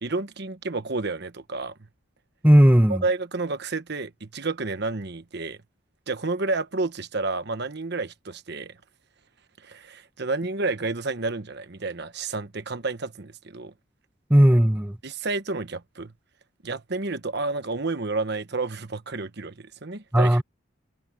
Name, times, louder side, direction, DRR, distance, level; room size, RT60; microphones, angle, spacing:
voice 1, 0.0-1.8 2.9-5.6 6.1-8.8 9.6-13.7 15.0-16.1 16.6-20.4, right 3 dB, 55° right, 1.2 m, -30 dB
voice 2, 2.4-3.0 14.3-15.0 20.1-20.4, equal, 10° right, 1.0 m, -16 dB
head